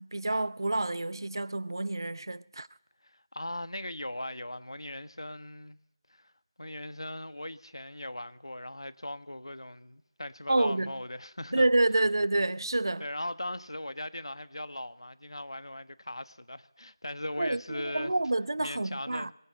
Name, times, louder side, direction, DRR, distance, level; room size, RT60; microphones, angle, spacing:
voice 1, 0.0-2.7 10.5-10.9 11.5-13.1 17.4-19.3, right 2 dB, 60° right, 0.7 m, -28 dB
voice 2, 3.0-5.8 6.1-6.3 6.6-11.7 13.0-18.1 18.6-19.3, left 1 dB, 85° left, 1.4 m, -39 dB
21.0 x 20.0 x 7.8 m
figure-of-eight pair, 170°, 3 cm